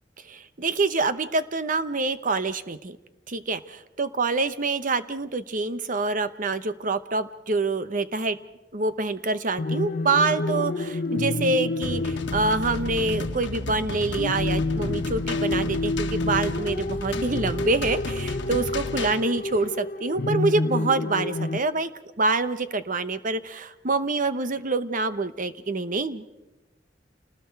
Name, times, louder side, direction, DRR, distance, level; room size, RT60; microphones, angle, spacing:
voice 1, 0.3-3.0 3.3-8.4 8.7-21.9 22.2-26.3, right 3 dB, 45° right, 12 dB, 0.9 m, -26 dB
sound 1, 9.6-21.6, left 2 dB, 50° left, 0.8 m, -29 dB
sound 2, 11.8-19.2, left 2 dB, 70° left, 1.4 m, -33 dB
29.5 x 19.5 x 4.7 m, 1.0 s
head